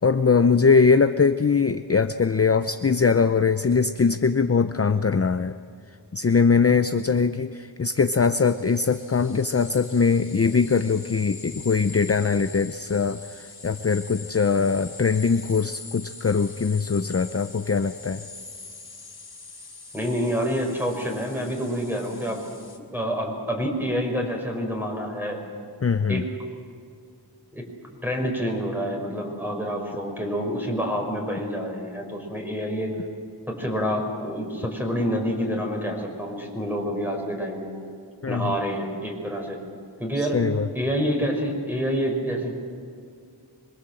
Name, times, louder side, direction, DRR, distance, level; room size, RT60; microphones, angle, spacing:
voice 1, 0.0-5.5 6.1-18.2 25.8-26.2 38.2-38.6 40.3-40.7, left 5 dB, 35° left, 10 dB, 0.6 m, -21 dB
sound 1, 8.1-22.8, left 3 dB, 60° left, 3.3 m, -43 dB
voice 2, 19.9-22.5 22.9-25.4 26.1-26.3 27.5-27.7 28.0-32.9 33.5-37.7 38.3-39.6 40.0-40.4 40.7-42.5, equal, 5° right, 1 dB, 5.7 m, -27 dB
25.5 x 23.5 x 7.8 m, 2.3 s
wide cardioid pair, 70°, 42 cm